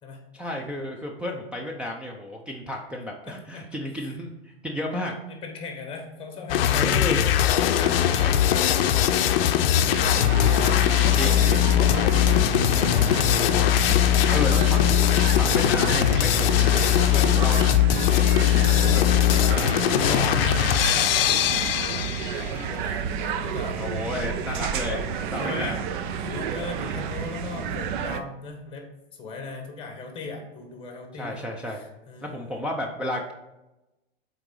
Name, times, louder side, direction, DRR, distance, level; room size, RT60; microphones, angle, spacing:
voice 1, 0.3-5.1 6.8-7.3 9.8-10.2 11.2-11.6 14.3-14.8 15.3-16.8 17.1-17.7 18.7-19.1 23.8-25.7 26.8-27.0 31.1-31.8 32.2-33.3, left 1 dB, 5° right, -2 dB, 0.5 m, -32 dB
voice 2, 3.3-3.7 4.0-4.1 5.3-9.5 10.9-14.6 17.2-18.9 19.9-23.8 25.4-25.8 26.2-32.6, left 3 dB, 15° left, 2 dB, 1.5 m, -38 dB
sound 1, 6.5-22.5, left 11 dB, 65° left, 0.6 m, -20 dB
sound 2, 7.8-9.4 9.9-11.7 12.1-17.6 18.0-18.4, right 4 dB, 75° right, 1.3 m, -43 dB
sound 3, 9.9-28.2, right 7 dB, 55° right, 0.6 m, -31 dB
7.7 x 3.9 x 3.9 m, 0.97 s
hypercardioid pair, 120°, 30 cm